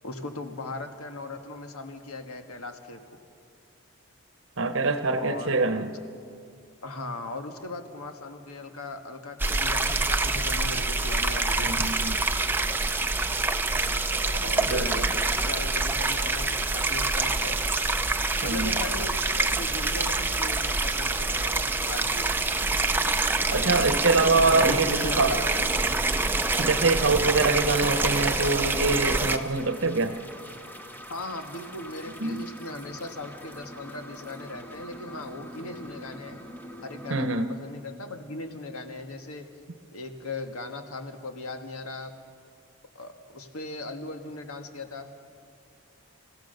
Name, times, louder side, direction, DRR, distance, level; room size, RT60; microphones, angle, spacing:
voice 1, 0.0-3.0 5.2-5.9 6.8-11.7 14.2-15.1 15.4-17.6 18.4-22.3 24.4-25.7 31.1-36.4 36.8-39.5 39.9-42.1 42.9-45.1, left 2 dB, 80° left, 6 dB, 1.6 m, -38 dB
voice 2, 4.6-5.9 11.6-12.2 14.7-15.3 18.4-18.7 23.5-25.3 26.6-30.2 32.2-32.4 37.1-37.5, right 3 dB, 60° right, 9 dB, 1.0 m, -24 dB
sound 1, 9.4-29.4, right 3 dB, 10° right, 0.6 m, -26 dB
sound 2, 24.9-37.1, equal, 10° left, 1.0 m, -45 dB
28.5 x 15.5 x 6.6 m, 2.4 s
head